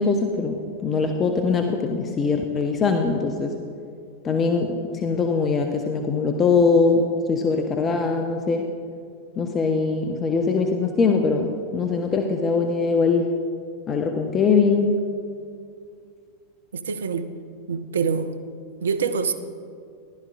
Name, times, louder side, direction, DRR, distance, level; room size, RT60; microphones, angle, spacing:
voice 1, 0.0-3.6 4.2-8.6 9.4-13.3 13.9-14.9, left 4 dB, 25° left, 4 dB, 0.6 m, -22 dB
voice 2, 16.7-17.3 17.7-18.3 18.8-19.3, right 6 dB, 65° right, 10 dB, 0.5 m, -25 dB
14.5 x 11.5 x 2.3 m, 2.3 s
figure-of-eight pair, 90°, 0 cm